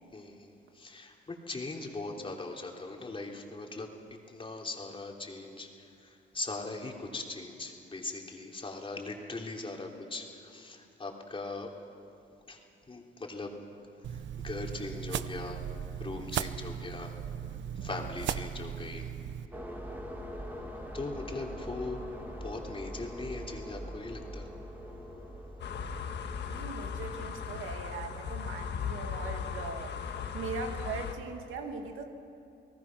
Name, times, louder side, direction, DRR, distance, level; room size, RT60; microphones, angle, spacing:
voice 1, 0.1-3.9 4.3-11.7 12.5-12.6 12.9-13.5 14.1-15.6 16.0-17.1 17.7-19.1 20.9-22.0 22.4-24.5, left 3 dB, 25° left, 1 dB, 3.2 m, -40 dB
sound 1, 14.0-19.5, right 9 dB, 70° right, 0.7 m, -37 dB
sound 2, 19.5-29.0, equal, 10° right, 2.8 m, -43 dB
sound 3, 25.6-31.2, left 7 dB, 60° left, 1.6 m, -37 dB
voice 2, 26.5-32.0, right 4 dB, 85° right, 4 dB, 2.2 m, -40 dB
30.0 x 19.0 x 6.1 m, 2.6 s
cardioid pair, 90°, 20 cm